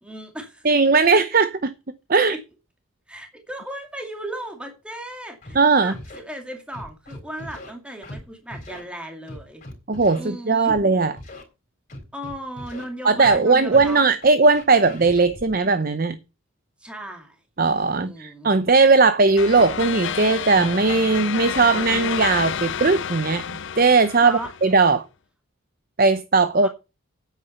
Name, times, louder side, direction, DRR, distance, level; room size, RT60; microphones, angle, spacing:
voice 1, 0.0-0.7 2.1-2.4 3.1-9.6 10.2-10.8 12.1-14.0 16.8-17.4 17.9-18.5 24.2-24.5 26.6-26.7, right 1 dB, 5° right, 2.3 m, -36 dB
voice 2, 0.6-1.7 2.1-2.3 5.5-5.9 9.9-11.1 13.0-16.2 17.6-23.4 23.8-25.0 26.0-26.7, right 4 dB, 45° right, 0.7 m, -18 dB
Scratching (performance technique), 5.4-5.5 5.9-6.2 6.7-7.7 8.0-8.2 8.5-8.8 9.3-10.2 10.6-10.8 11.2-11.4 11.9-12.8 13.2-13.4 13.7-15.6, left 1 dB, 40° left, 3.8 m, -39 dB
sound 1, 19.4-24.8, left 7 dB, 60° left, 0.5 m, -30 dB
9.8 x 8.2 x 5.7 m
head